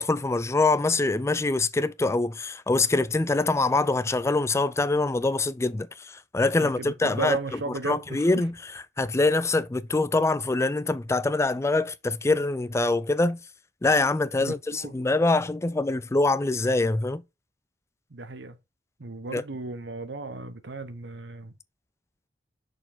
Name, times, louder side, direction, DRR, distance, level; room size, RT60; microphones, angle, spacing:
voice 1, 0.0-7.4 7.9-8.5 9.0-13.4 13.8-17.2 19.3-19.4, left 2 dB, 15° left, 0.4 m, -24 dB
voice 2, 6.6-8.4 14.4-14.9 18.1-18.6 19.0-21.5, right 3 dB, 85° right, 1.0 m, -35 dB
6.4 x 4.4 x 4.2 m
head